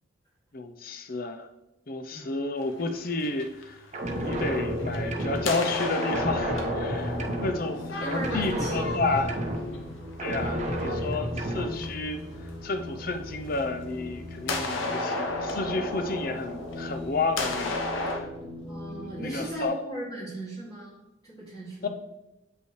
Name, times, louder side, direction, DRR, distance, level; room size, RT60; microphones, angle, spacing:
voice 1, 0.5-1.5 1.9-3.8 4.2-9.4 10.2-12.2 12.6-18.3 18.9-19.8 21.8-21.9, left 3 dB, 50° left, 7 dB, 0.6 m, -31 dB
sound 1, 2.6-4.4 4.8-12.1 13.5-13.6 14.5-18.2, left 2 dB, 80° left, 0.9 m, -33 dB
sound 2, 3.9-5.8 6.0-7.9 8.1-9.9 10.2-11.9, equal, 35° right, 0.7 m, -31 dB
sound 3, 4.0-19.7, left 1 dB, 65° left, 1.9 m, -40 dB
voice 2, 8.0-9.1 10.4-10.6 18.7-21.0 21.2-21.9, right 1 dB, 30° left, -10 dB, 2.4 m, -37 dB
8.1 x 5.5 x 3.1 m, 0.96 s
head